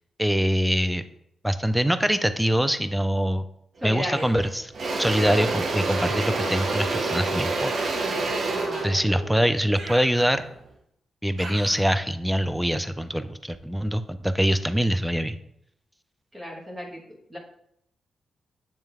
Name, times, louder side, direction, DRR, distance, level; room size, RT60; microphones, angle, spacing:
voice 1, 0.2-1.0 1.4-3.4 3.8-4.7 5.0-7.7 8.8-10.5 11.2-15.4, equal, 5° right, 11 dB, 0.4 m, -24 dB
voice 2, 3.8-4.3 8.5-9.0 16.3-17.0 17.3-17.4, equal, 20° right, -2 dB, 1.3 m, -34 dB
Engine / Drill, 3.8-4.1 4.4-10.5, right 3 dB, 50° right, 0.8 m, -28 dB
Human voice, 4.1-4.5 5.9-6.3 7.7-8.3 9.7-10.6 11.4-11.9, right 2 dB, 65° right, 1.6 m, -40 dB
9.0 x 3.2 x 3.5 m, 0.73 s
wide cardioid pair, 135°, 0 cm